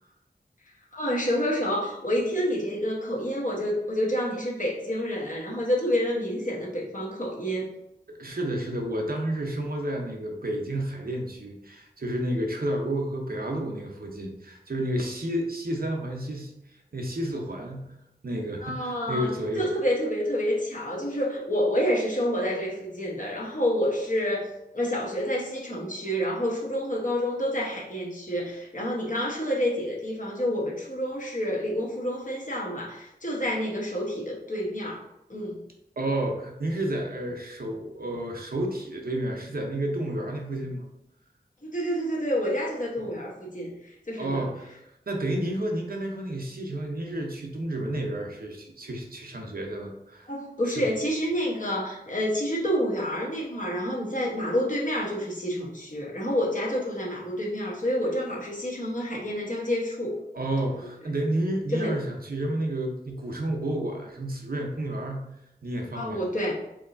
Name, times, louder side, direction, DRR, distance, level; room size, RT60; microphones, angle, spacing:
voice 1, 0.9-7.7 18.6-19.3 19.5-24.5 24.7-35.0 35.3-35.6 41.6-43.7 44.1-44.4 50.3-60.2 61.7-62.0 65.9-66.5, equal, 50° left, -3 dB, 1.1 m, -28 dB
voice 2, 8.2-16.5 16.9-17.9 18.2-19.7 36.0-40.9 44.2-44.8 45.1-50.3 50.7-50.9 60.3-65.3 65.6-66.2, right 1 dB, 60° right, 1 dB, 0.7 m, -31 dB
4.6 x 2.9 x 2.6 m, 0.85 s
wide cardioid pair, 60°, 17 cm